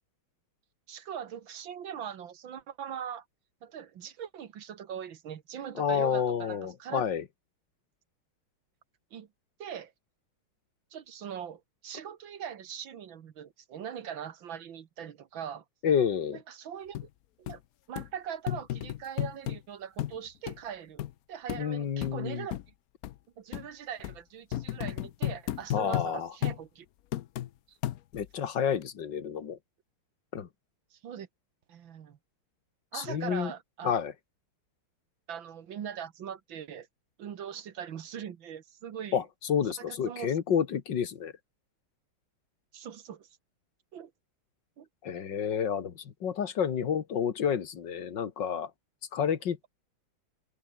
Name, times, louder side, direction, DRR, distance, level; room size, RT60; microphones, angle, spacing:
voice 1, 0.9-3.2 3.6-7.0 9.1-9.3 9.6-9.9 10.9-15.6 16.3-17.0 17.4-17.6 17.9-22.6 23.4-26.9 27.7-27.8 30.9-31.3 31.7-32.2 32.9-33.9 35.3-36.9 37.2-39.2 39.8-40.4 42.7-43.3 43.9-44.1 44.8-44.9, right 8 dB, 70° right, 2.1 m, -41 dB
voice 2, 5.8-7.2 15.8-16.4 21.6-22.5 25.7-26.3 28.1-29.6 30.3-30.5 32.9-33.5 33.8-34.1 39.1-39.2 39.5-41.3 45.0-48.7 49.1-49.7, left 8 dB, 60° left, 2.2 m, -29 dB
sound 1, 16.9-17.1 17.5-17.6 18.0-18.1 18.5-19.6 20.0-20.2 20.5-20.6 21.0-21.1 21.5-21.6 22.0-22.2 22.5-22.6 23.0-23.1 23.5-23.7 24.0-24.2 24.5-26.1 26.4-26.6 27.1-27.5 27.8-28.3 28.8-28.9, left 13 dB, 85° left, 0.8 m, -33 dB
open air
omnidirectional pair, 2.3 m